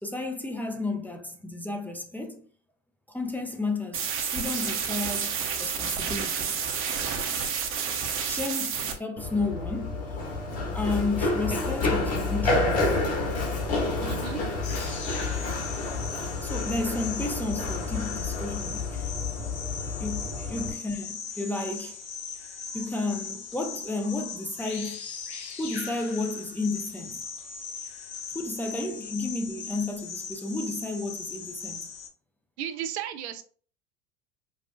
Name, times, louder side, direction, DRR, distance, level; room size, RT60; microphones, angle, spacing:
voice 1, 0.0-2.4 3.1-6.6 8.2-10.0 10.7-12.9 16.4-19.1 20.0-22.0 22.7-25.1 25.6-27.2 28.3-31.8, left 2 dB, 5° left, 0.5 m, -32 dB
sound 1, 3.9-8.9, right 6 dB, 40° right, 0.9 m, -30 dB
Run, 9.2-20.7, left 3 dB, 45° left, 1.7 m, -29 dB
voice 2, 14.0-14.4 32.6-33.4, right 10 dB, 70° right, 0.5 m, -34 dB
sound 2, 14.6-32.1, left 6 dB, 75° left, 0.9 m, -39 dB
5.3 x 2.4 x 2.2 m
hypercardioid pair, 85°, 34 cm